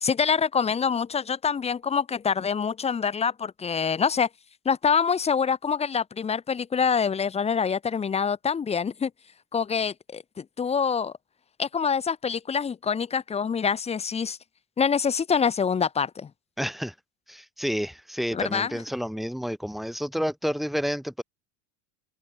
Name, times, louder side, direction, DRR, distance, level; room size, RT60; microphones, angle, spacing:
voice 1, 0.0-4.3 4.6-9.1 9.5-11.1 11.6-14.4 14.8-16.3 18.3-18.7, left 6 dB, 15° left, 1.2 m, -25 dB
voice 2, 16.6-16.9 17.3-21.2, equal, ahead, 1.0 m, -30 dB
cardioid pair, 150°, 35 cm